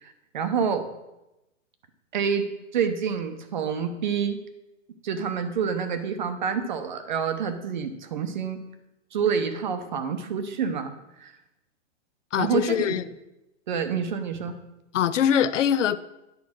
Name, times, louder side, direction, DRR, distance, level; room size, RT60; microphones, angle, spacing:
voice 1, 0.0-0.9 2.1-4.4 5.0-8.6 9.1-10.9 11.2-11.3 12.4-12.9 13.7-14.6, right 6 dB, 35° right, 9 dB, 0.8 m, -27 dB
voice 2, 12.3-13.0 14.9-16.0, left 9 dB, 70° left, 15 dB, 0.6 m, -23 dB
9.7 x 4.8 x 6.3 m, 0.94 s
hypercardioid pair, 170°, 38 cm